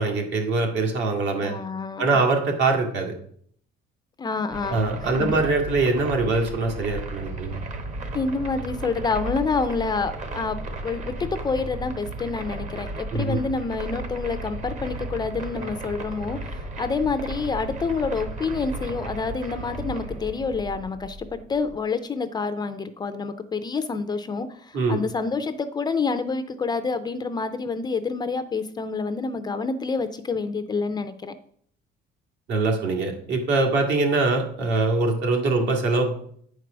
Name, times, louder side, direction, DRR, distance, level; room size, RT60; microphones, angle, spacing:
voice 1, 0.0-1.6 2.0-3.1 4.7-7.6 13.1-13.4 24.7-25.0 32.5-36.1, right 3 dB, 65° right, 3 dB, 1.9 m, -23 dB
voice 2, 1.4-2.2 4.2-5.4 8.1-31.3, left 4 dB, 20° left, 10 dB, 0.4 m, -28 dB
sound 1, 4.5-21.8, right 2 dB, 40° right, 1.1 m, -35 dB
8.8 x 4.7 x 6.0 m, 0.62 s
cardioid pair, 170°, 19 cm